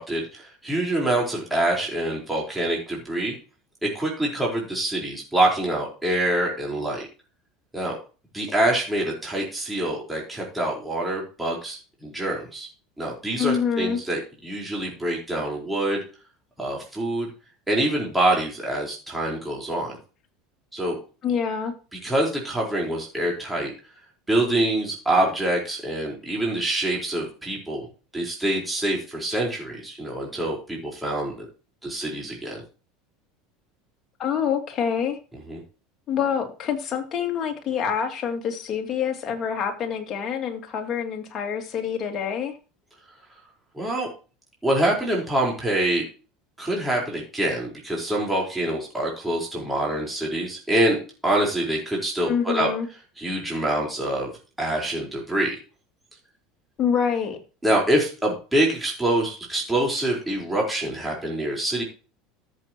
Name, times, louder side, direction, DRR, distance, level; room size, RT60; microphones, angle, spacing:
voice 1, 0.0-3.3 3.8-7.1 7.7-8.0 8.3-12.7 13.0-16.0 16.6-17.3 17.7-20.0 20.7-21.0 22.0-23.7 24.3-27.9 28.1-31.4 31.8-32.6 35.5-35.6 43.7-44.1 44.6-46.0 46.6-52.7 53.2-54.3 54.6-55.6 57.6-61.8, right 1 dB, 10° right, -3 dB, 4.4 m, -25 dB
voice 2, 13.4-14.0 21.2-21.7 34.2-35.2 36.1-42.6 52.3-52.9 56.8-57.4, left 7 dB, 40° left, 3 dB, 2.9 m, -26 dB
14.0 x 7.7 x 3.0 m, 0.35 s
hypercardioid pair, 90°, 0 cm